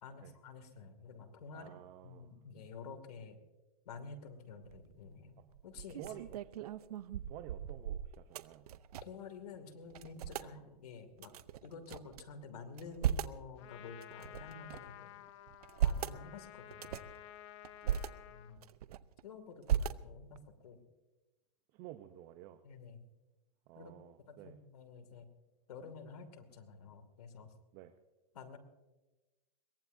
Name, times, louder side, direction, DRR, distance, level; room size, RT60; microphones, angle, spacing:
voice 1, 0.0-3.4 3.9-6.1 8.9-11.3 11.6-15.1 15.8-17.1 18.3-18.7 19.2-20.8 22.6-23.0 23.7-23.9 24.2-25.3 25.7-27.5 28.3-28.6, left 5 dB, 75° left, 7 dB, 2.5 m, -50 dB
voice 2, 1.5-2.3 6.0-6.3 6.6-6.7 7.3-8.7 10.4-10.5 17.8-18.0 21.7-22.6 23.7-24.6 27.7-27.9, right 14 dB, 35° right, 9 dB, 0.8 m, -51 dB
sound 1, 4.6-5.0 5.5-9.3 9.5-9.6 9.9-10.5 11.2-12.2 12.7-13.4 14.0-15.0 15.5-16.2 16.7-17.2 17.6-18.1 18.6-19.2 19.7-20.4, right 10 dB, 70° right, 0.7 m, -37 dB
Trumpet, 13.6-18.6, left 12 dB, 45° left, 1.0 m, -53 dB
22.0 x 18.5 x 2.7 m, 1.1 s
hypercardioid pair, 140°, 20 cm